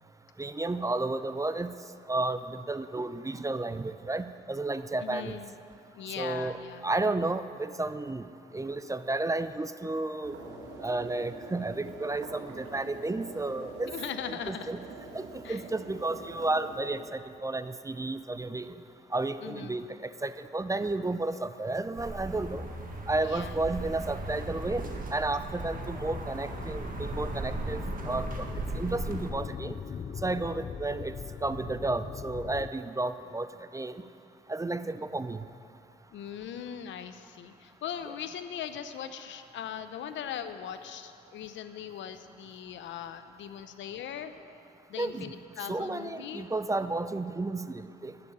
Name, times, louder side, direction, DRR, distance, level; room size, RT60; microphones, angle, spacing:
voice 1, 0.4-1.8 2.1-5.4 6.2-8.3 8.5-10.3 10.8-13.9 14.3-14.8 15.1-18.7 19.1-22.6 23.1-24.8 25.1-28.5 28.7-29.8 30.2-31.1 31.4-34.0 34.5-35.4 45.0-48.1, right 2 dB, 15° right, 12 dB, 0.6 m, -32 dB
voice 2, 5.0-5.5 5.9-6.9 13.9-14.7 15.4-15.6 19.4-19.8 23.2-23.5 36.1-44.3 44.9-46.5, left 9 dB, 75° left, 10 dB, 0.7 m, -40 dB
sound 1, 10.2-17.0, right 3 dB, 85° right, 1.8 m, -45 dB
sound 2, 21.9-29.3, right 2 dB, 45° right, 1.7 m, -37 dB
sound 3, 25.6-32.7, left 7 dB, 35° left, 0.3 m, -40 dB
12.0 x 6.9 x 9.3 m, 2.5 s
supercardioid pair, 65°, 20 cm